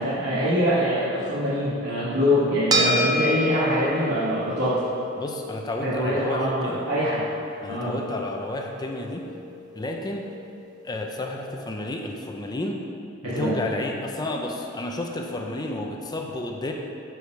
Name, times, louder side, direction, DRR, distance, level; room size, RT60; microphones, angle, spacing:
voice 1, 0.0-4.7 5.8-7.3 7.7-7.9 13.2-13.5, equal, 90° right, -12 dB, 1.7 m, -24 dB
sound 1, 2.7-11.3, right 1 dB, 20° right, 0.7 m, -31 dB
voice 2, 5.2-6.9 7.6-9.3 9.8-10.3 10.8-12.8 13.2-16.7, left 1 dB, 20° left, 1 dB, 0.5 m, -31 dB
6.7 x 4.8 x 5.7 m, 2.6 s
head